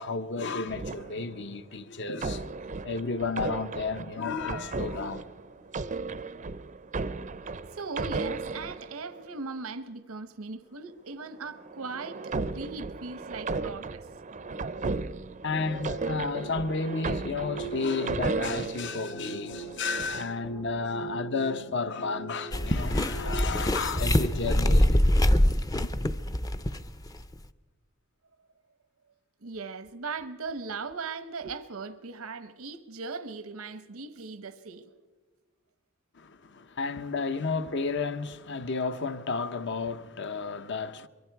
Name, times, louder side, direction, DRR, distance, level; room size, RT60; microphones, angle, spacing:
voice 1, 0.0-2.5 2.8-5.2 15.4-25.3 25.7-25.9 36.1-41.1, left 4 dB, 55° left, 0.9 m, -32 dB
sound 1, 0.7-1.6 2.2-9.4 11.4-19.0 19.6-20.4, right 3 dB, 35° right, 0.5 m, -35 dB
voice 2, 7.7-14.1 29.4-34.9, right 4 dB, 85° right, 0.9 m, -39 dB
sound 2, 15.5-24.8, right 3 dB, 85° left, 3.8 m, -42 dB
sound 3, 22.5-27.1 27.3-27.4, left 1 dB, 15° left, 0.6 m, -24 dB
23.5 x 23.5 x 4.7 m
head